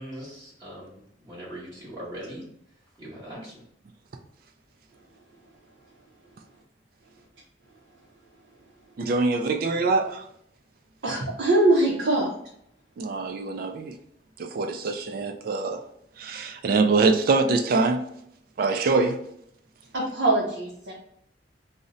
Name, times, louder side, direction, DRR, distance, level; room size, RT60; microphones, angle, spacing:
voice 1, 0.0-2.5 3.0-3.6, equal, 20° right, 1.1 m, -40 dB
voice 2, 9.0-10.2 13.0-13.9 14.4-15.8 16.2-18.0 18.6-19.2, right 3 dB, 55° right, 0.3 m, -24 dB
voice 3, 11.0-12.3 19.9-20.9, right 2 dB, 80° right, 0.7 m, -22 dB
2.7 x 2.1 x 3.6 m
head